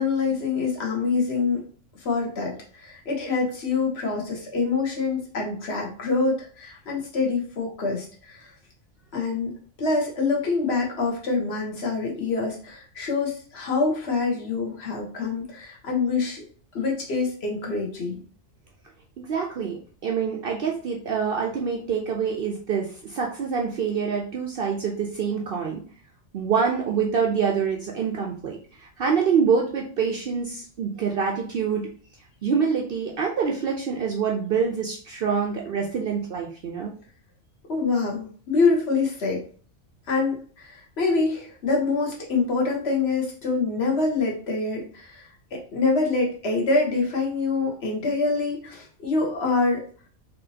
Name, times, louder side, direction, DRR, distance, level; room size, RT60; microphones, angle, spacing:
voice 1, 0.0-1.6 2.0-8.5 9.1-16.4 16.7-18.2 37.7-39.4 40.1-45.3 45.5-49.8, left 4 dB, 55° left, 0 dB, 1.2 m, -25 dB
voice 2, 19.2-25.8 26.3-31.9 32.4-36.9, right 6 dB, 60° right, 0 dB, 0.6 m, -26 dB
4.2 x 2.7 x 2.7 m, 0.44 s
omnidirectional pair, 1.4 m